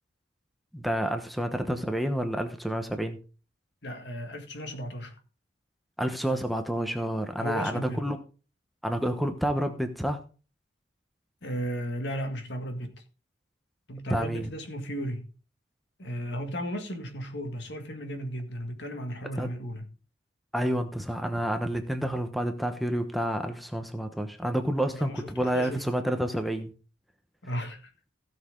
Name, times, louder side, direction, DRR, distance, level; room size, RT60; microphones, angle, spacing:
voice 1, 0.7-3.2 6.0-8.2 8.8-10.2 14.1-14.5 19.4-19.5 20.5-26.7, equal, ahead, 1.0 m, -29 dB
voice 2, 3.8-5.2 7.4-8.0 11.4-13.0 13.9-15.3 16.0-19.9 24.9-25.9 27.4-28.1, equal, 65° left, 2.0 m, -35 dB
16.5 x 6.5 x 3.8 m
head